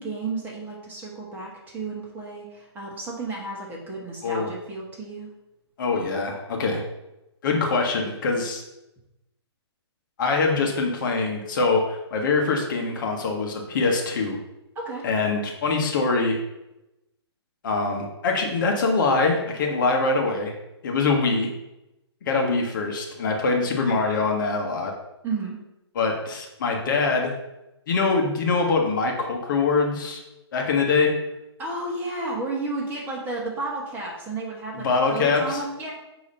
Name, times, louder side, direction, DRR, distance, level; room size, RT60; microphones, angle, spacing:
voice 1, 0.0-5.3 14.7-15.1 25.2-25.6 31.6-35.9, right 3 dB, 15° right, -3 dB, 1.6 m, -32 dB
voice 2, 5.8-6.8 7.4-8.6 10.2-14.4 15.0-16.4 17.6-20.5 20.8-21.5 22.3-24.9 25.9-27.3 27.9-30.2 30.5-31.1 34.7-35.6, left 4 dB, 45° left, 1 dB, 1.2 m, -23 dB
8.4 x 3.1 x 5.4 m, 0.94 s
figure-of-eight pair, 130°, 14 cm